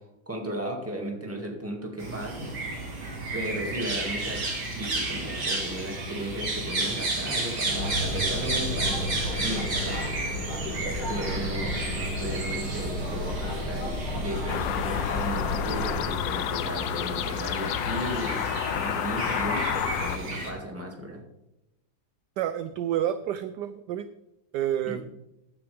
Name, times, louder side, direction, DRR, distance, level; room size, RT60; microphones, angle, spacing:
voice 1, 0.3-2.5 3.3-4.4 4.7-10.0 11.1-21.2 24.9-25.0, right 1 dB, 5° right, 0 dB, 2.0 m, -35 dB
sound 1, 2.0-20.5, right 2 dB, 55° right, 2.9 m, -32 dB
sound 2, 7.7-16.0, left 1 dB, 90° left, 4.1 m, -33 dB
sound 3, 14.5-20.2, left 11 dB, 70° left, 1.2 m, -30 dB
voice 2, 22.4-24.1 24.5-25.1, right 11 dB, 75° right, 12 dB, 1.0 m, -29 dB
14.5 x 10.0 x 3.4 m, 0.91 s
omnidirectional pair, 2.2 m